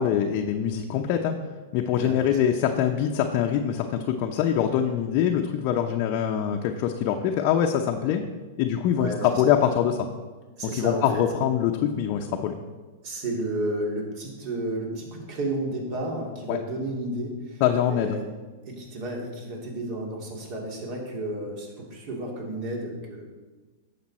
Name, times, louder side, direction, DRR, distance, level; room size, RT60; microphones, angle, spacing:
voice 1, 0.0-1.3 1.7-8.2 8.6-10.1 10.7-12.5 16.5-16.6 17.6-18.2, left 9 dB, 50° left, 2 dB, 0.7 m, -24 dB
voice 2, 2.0-2.4 8.9-9.5 10.6-11.2 13.0-18.2 18.7-23.2, right 1 dB, 50° right, 0 dB, 2.9 m, -32 dB
10.5 x 6.8 x 4.3 m, 1.3 s
hypercardioid pair, 115°, 0 cm